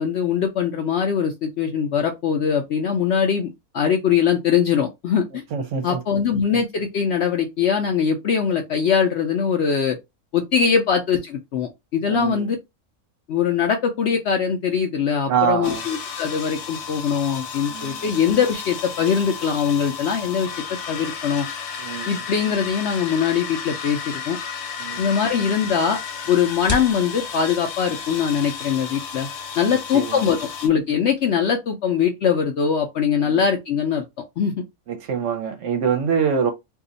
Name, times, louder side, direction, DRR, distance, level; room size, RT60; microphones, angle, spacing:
voice 1, 0.0-5.4 5.8-10.0 10.3-12.6 13.3-20.5 20.9-21.5 22.1-24.4 25.0-26.0 26.3-29.3 29.6-34.0 34.4-34.6, left 7 dB, 65° left, 0.7 m, -22 dB
voice 2, 5.5-6.0 10.6-10.7 12.1-12.5 15.3-15.8 17.7-18.0 21.8-22.1 24.8-25.2 29.7-30.3 33.2-33.4 34.9-36.5, right 7 dB, 65° right, 0.8 m, -25 dB
sound 1, 15.6-30.7, left 6 dB, 85° left, 1.2 m, -33 dB
sound 2, 24.9-31.2, left 2 dB, 10° left, 1.0 m, -39 dB
2.7 x 2.4 x 3.8 m
omnidirectional pair, 1.6 m